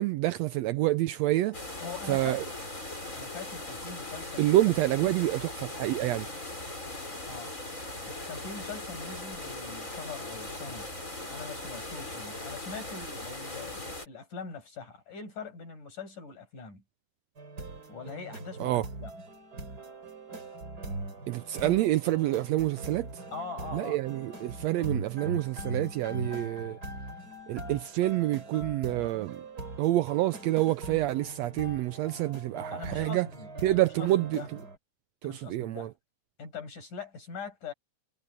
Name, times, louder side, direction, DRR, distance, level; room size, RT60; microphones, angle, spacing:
voice 1, 0.0-1.6 2.1-2.4 4.4-6.3 18.6-18.8 21.3-23.2 23.7-26.8 27.5-29.4 29.8-33.3 33.6-34.4 35.2-35.9, right 15 dB, 80° right, 1.6 m, -27 dB
sound 1, 1.5-14.1, left 2 dB, 25° left, 7.9 m, -39 dB
voice 2, 1.8-2.5 3.1-4.4 4.9-5.1 7.3-7.6 8.0-10.9 11.3-16.8 17.9-19.1 23.3-24.0 32.7-34.5 35.2-35.9 36.4-37.7, left 5 dB, 90° left, 9.4 m, -42 dB
sound 2, 17.4-34.8, right 2 dB, 30° right, 4.3 m, -41 dB
omnidirectional pair, 3.5 m